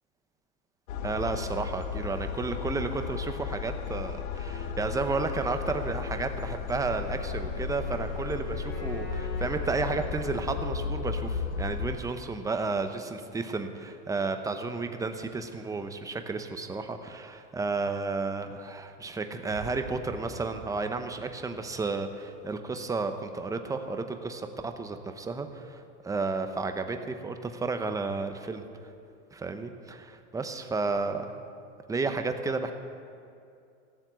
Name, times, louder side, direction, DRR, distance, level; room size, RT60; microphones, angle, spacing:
sound 1, 0.9-12.0, left 6 dB, 85° left, 1.1 m, -34 dB
voice 1, 1.0-28.6 29.3-31.4 31.9-32.7, right 3 dB, 10° right, 7 dB, 0.7 m, -32 dB
Wind instrument woodwind instrument, 6.9-10.9, left 3 dB, 35° left, 2.9 m, -45 dB
sound 2, 19.5-22.7 22.9-23.2, right 5 dB, 50° right, 1.6 m, -46 dB
16.0 x 7.2 x 8.0 m, 2.4 s
supercardioid pair, 135°, 40 cm